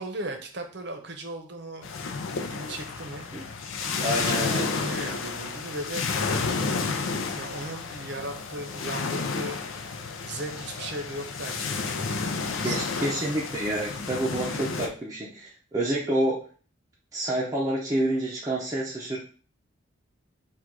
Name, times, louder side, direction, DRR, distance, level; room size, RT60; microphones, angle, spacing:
voice 1, 0.0-1.9 2.3-3.3 4.3-6.4 7.3-9.9 10.2-12.8, right 1 dB, 55° right, 4 dB, 0.7 m, -37 dB
sound 1, 1.8-14.9, left 4 dB, 70° left, 0.5 m, -31 dB
voice 2, 4.0-4.7 12.6-16.4 17.1-19.2, right 1 dB, 15° right, -5 dB, 0.5 m, -28 dB
3.8 x 2.4 x 4.6 m, 0.41 s
head